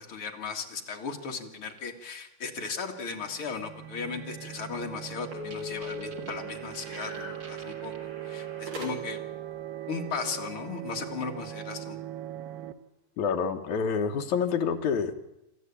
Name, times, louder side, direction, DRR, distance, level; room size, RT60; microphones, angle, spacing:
voice 1, 0.0-7.9 8.2-9.2 9.9-12.0, left 5 dB, 45° left, 2 dB, 2.0 m, -36 dB
sound 1, 1.6-1.8 2.5-2.8 4.6-4.7 5.0-5.1 5.2-8.0, right 4 dB, 30° right, 1.7 m, -50 dB
sound 2, 3.2-12.7, right 12 dB, 80° right, 2.9 m, -40 dB
sound 3, 4.7-9.4, left 3 dB, 50° right, 5.0 m, -42 dB
voice 2, 13.2-15.1, left 6 dB, 60° left, 5 dB, 2.1 m, -27 dB
27.0 x 13.5 x 8.5 m, 0.90 s
omnidirectional pair, 4.9 m